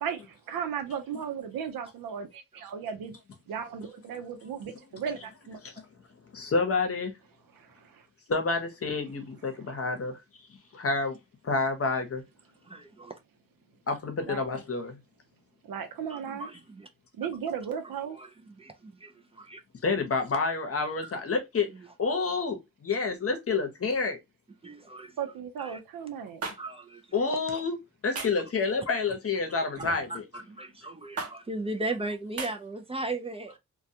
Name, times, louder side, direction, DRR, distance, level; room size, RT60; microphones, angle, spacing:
voice 1, 0.0-3.1 3.5-5.6 7.6-7.7 9.7-9.8 14.3-14.5 15.7-16.5 17.2-18.2 25.2-26.4, right 7 dB, 85° right, 0.7 m, -35 dB
voice 2, 6.3-7.1 8.3-10.2 10.7-11.2 11.4-12.2 13.9-15.0 19.8-21.7 22.0-24.2 27.1-27.8 28.0-30.2, left 4 dB, 45° left, 0.8 m, -28 dB
voice 3, 12.7-13.1 16.1-16.9 17.8-19.6 21.0-21.1 21.7-21.9 24.6-25.1 25.6-25.8 26.6-27.0 27.3-27.4 29.8-30.2 30.5-33.6, right 2 dB, 20° right, 0.4 m, -37 dB
sound 1, 26.4-26.6 28.1-28.4 29.7-30.0 31.2-31.3 32.4-32.5, right 4 dB, 45° right, 0.9 m, -35 dB
2.3 x 2.1 x 2.7 m
cardioid pair, 75°, 33 cm